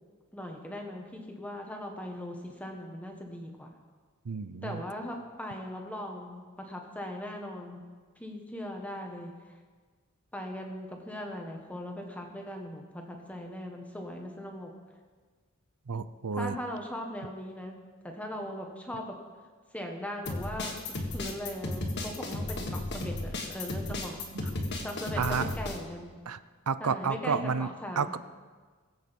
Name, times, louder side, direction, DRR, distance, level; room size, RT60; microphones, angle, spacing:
voice 1, 0.3-3.7 4.6-7.8 8.2-9.3 10.3-14.7 16.3-17.7 18.0-19.2 19.7-20.7 21.1-24.2 24.8-26.2 26.8-28.2, left 1 dB, 5° left, 2 dB, 1.4 m, -39 dB
voice 2, 4.3-4.8 15.9-16.6 25.2-25.5 26.3-26.4 26.7-27.7 28.0-28.2, right 5 dB, 85° right, 14 dB, 0.6 m, -30 dB
sound 1, 20.3-25.8, left 2 dB, 50° left, 1.9 m, -34 dB
20.5 x 8.1 x 5.4 m, 1.5 s
head